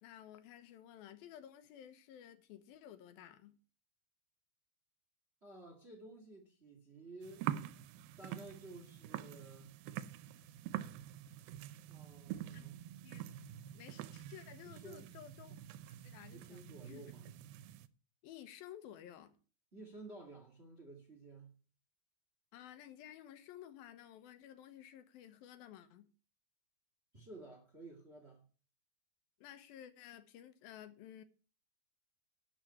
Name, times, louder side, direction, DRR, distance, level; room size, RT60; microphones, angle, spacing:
voice 1, 0.0-3.6 12.5-12.7 13.0-13.3 13.7-15.6 16.0-17.1 18.2-19.4 22.5-26.1 29.4-31.2, left 11 dB, 85° left, 2.8 m, -54 dB
voice 2, 5.4-7.4 8.2-9.8 11.9-12.8 14.6-15.1 16.3-17.3 19.7-21.6 27.1-28.4, right 2 dB, 25° right, 1.6 m, -53 dB
sound 1, 7.2-17.9, right 12 dB, 85° right, 2.5 m, -46 dB
12.0 x 4.8 x 8.5 m
omnidirectional pair, 4.1 m